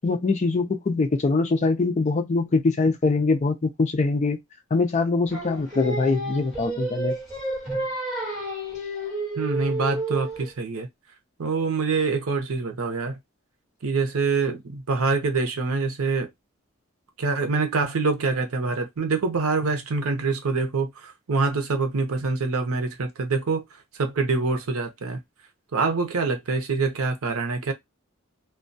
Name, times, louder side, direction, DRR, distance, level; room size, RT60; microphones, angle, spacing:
voice 1, 0.0-4.4 4.7-7.1, left 3 dB, 35° left, 0.4 m, -23 dB
Singing, 5.3-10.5, right 2 dB, ahead, 1.1 m, -31 dB
voice 2, 9.4-10.9 11.4-13.2 13.8-16.3 17.2-23.6 24.0-25.2 25.7-27.7, right 4 dB, 90° right, 0.6 m, -25 dB
2.2 x 2.2 x 2.5 m
head